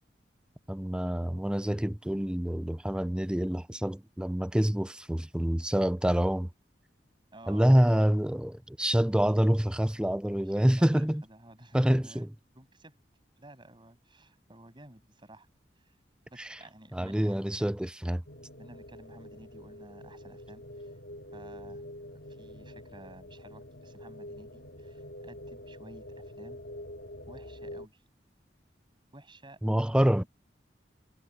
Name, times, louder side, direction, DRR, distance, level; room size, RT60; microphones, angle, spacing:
voice 1, 0.7-6.5 7.5-11.2 11.7-12.3 16.9-18.2 29.6-30.2, equal, 5° right, 0.5 m, -26 dB
voice 2, 7.3-7.7 10.6-12.3 12.5-12.9 13.4-15.5 15.8-15.9 16.3-17.7 18.6-20.9 21.3-21.8 22.3-26.6 27.3-28.0 29.1-29.6 29.9-30.3, right 1 dB, 30° right, 7.7 m, -53 dB
sound 1, 18.3-27.9, left 1 dB, 80° left, 2.6 m, -46 dB
head